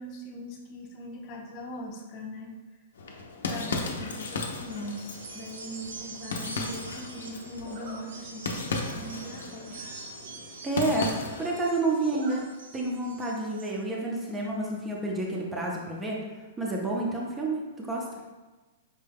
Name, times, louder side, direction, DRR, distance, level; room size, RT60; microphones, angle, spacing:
voice 1, 0.0-2.5 3.5-10.1, left 1 dB, 35° left, 0 dB, 0.6 m, -40 dB
sound 1, 3.0-11.6, left 3 dB, 85° left, 0.6 m, -36 dB
sound 2, 4.4-13.7, right 4 dB, 85° right, 0.6 m, -46 dB
Zipper (clothing), 5.7-6.1 7.6-8.0 8.6-8.7 9.1-9.2 9.4-9.5 9.8-10.4 10.7-10.8 11.0-11.6 11.9-12.4 12.7-12.8 14.2-14.5, right 2 dB, 50° right, 0.9 m, -47 dB
voice 2, 10.6-12.4 12.7-16.2 16.6-18.1, right 2 dB, 10° right, -3 dB, 0.6 m, -29 dB
5.4 x 2.2 x 3.4 m, 1.2 s
hypercardioid pair, 150°, 0 cm